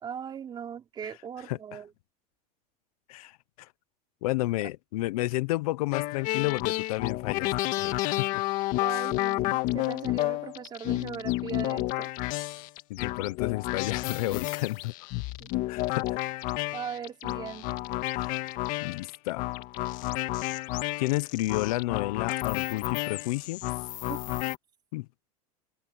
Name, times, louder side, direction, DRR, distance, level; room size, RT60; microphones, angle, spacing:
voice 1, 0.0-1.9 8.8-12.1 15.4-15.5 16.7-17.8 24.0-24.2, right 8 dB, 20° right, 4.1 m, -39 dB
voice 2, 4.2-8.4 8.9-9.0 12.9-14.9 15.7-16.2 18.1-18.3 18.8-19.5 21.0-23.6 24.9-25.1, left 18 dB, 75° left, 0.9 m, -31 dB
sound 1, 5.9-24.6, left 18 dB, 45° left, 1.8 m, -31 dB
supercardioid pair, 155°, 19 cm